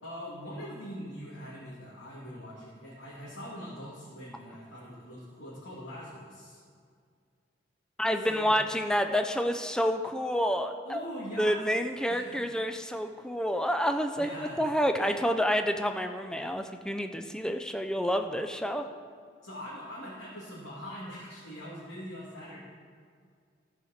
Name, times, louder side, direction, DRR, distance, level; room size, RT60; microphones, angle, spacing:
voice 1, 0.0-6.6 8.2-8.6 10.8-11.6 12.1-12.4 14.2-14.6 15.0-15.2 19.4-22.6, equal, 85° left, -8 dB, 2.3 m, -42 dB
voice 2, 8.0-11.0 11.4-18.9, equal, 5° left, 6 dB, 0.4 m, -29 dB
14.5 x 5.1 x 6.4 m, 2.1 s
head